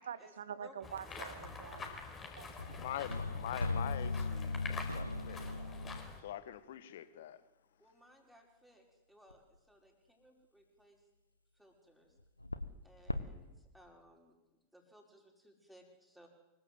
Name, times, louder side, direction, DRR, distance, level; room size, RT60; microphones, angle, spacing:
voice 1, 0.0-2.8, right 8 dB, 65° right, 1.2 m, -47 dB
voice 2, 0.6-0.9 7.8-11.0 11.5-12.2 12.8-14.4 14.7-16.3, equal, ahead, 5.7 m, -62 dB
sound 1, 0.8-6.2, left 4 dB, 20° left, 5.0 m, -47 dB
sound 2, 1.4-1.9 2.6-6.3 9.3-9.4 12.2-12.8 13.1-13.3, left 2 dB, 85° left, 1.2 m, -38 dB
voice 3, 2.6-5.5 6.2-7.4, left 11 dB, 55° left, 1.6 m, -44 dB
25.0 x 22.5 x 8.0 m
figure-of-eight pair, 90°, 0 cm